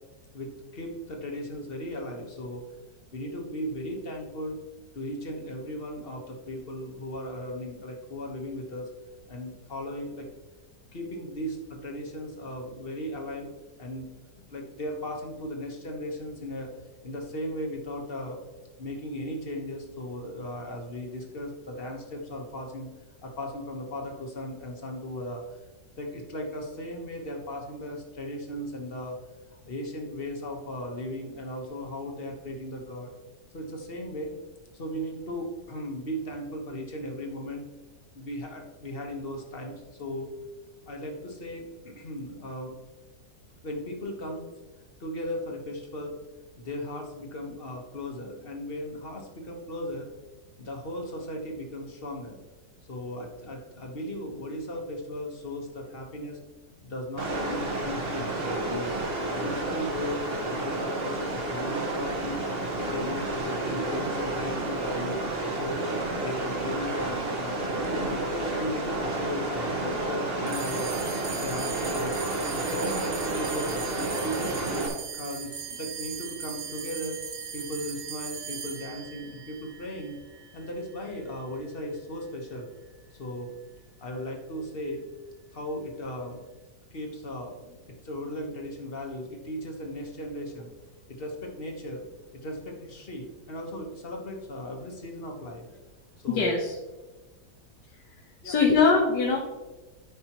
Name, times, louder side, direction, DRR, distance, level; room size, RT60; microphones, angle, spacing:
voice 1, 0.3-2.6 3.1-4.6 4.9-8.9 9.3-10.3 10.9-13.5 13.8-16.7 17.0-18.4 18.8-22.9 23.2-25.6 26.0-29.2 29.6-33.1 33.5-34.3 34.7-37.7 38.1-40.3 40.9-42.8 43.6-44.5 45.0-46.2 46.6-50.1 50.6-52.4 52.9-56.4 56.8-58.9 59.3-62.5 62.9-65.8 66.2-67.6 68.0-71.0 71.4-72.2 72.6-73.8 74.2-77.2 77.5-80.2 80.5-82.7 83.2-83.5 84.0-85.0 85.5-86.4 86.9-90.7 91.1-92.0 92.4-95.6 96.2-96.5 98.4-98.8, equal, 35° left, 1 dB, 1.4 m, -37 dB
sound 1, 57.2-74.9, right 2 dB, 35° right, 1.6 m, -30 dB
sound 2, 70.5-81.1, right 7 dB, 70° right, 1.5 m, -39 dB
voice 2, 96.3-96.8 98.4-99.4, left 4 dB, 80° left, -1 dB, 1.6 m, -22 dB
13.5 x 5.4 x 3.0 m, 1.2 s
omnidirectional pair, 1.8 m